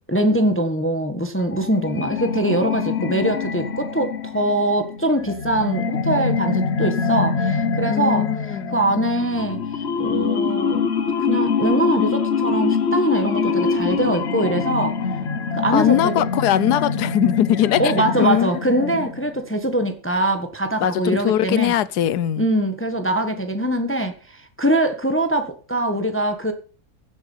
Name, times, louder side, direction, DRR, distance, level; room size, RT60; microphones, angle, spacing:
voice 1, 0.1-8.3 8.7-10.9 11.3-15.0 15.5-16.1 17.8-21.7 22.4-26.5, right 1 dB, 10° left, 1.3 m, -22 dB
sound 1, 1.5-19.4, left 5 dB, 45° left, 1.1 m, -24 dB
voice 2, 7.9-8.8 15.7-18.5 18.8-19.0 20.8-22.5, left 11 dB, 80° left, 1.3 m, -21 dB
16.0 x 8.0 x 5.6 m
omnidirectional pair, 1.7 m